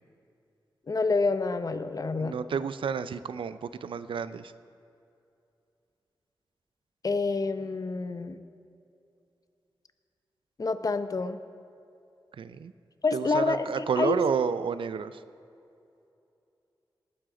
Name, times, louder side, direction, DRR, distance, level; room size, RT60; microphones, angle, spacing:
voice 1, 0.9-2.4 7.0-8.4 10.6-11.4 13.0-14.2, left 3 dB, 45° left, 11 dB, 0.7 m, -28 dB
voice 2, 2.2-4.5 12.4-12.7 13.1-15.2, right 6 dB, 80° right, 14 dB, 0.4 m, -30 dB
19.0 x 9.9 x 3.8 m, 2.6 s
wide cardioid pair, 80°, 9 cm